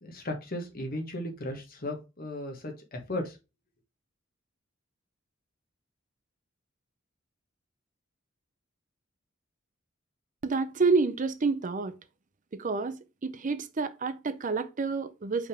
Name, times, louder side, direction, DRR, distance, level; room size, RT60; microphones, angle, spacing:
voice 1, 0.0-3.4, left 1 dB, 45° left, 1.4 m, -36 dB
voice 2, 10.4-12.0 12.5-15.5, right 4 dB, 40° right, 0.5 m, -29 dB
5.4 x 3.6 x 4.9 m
head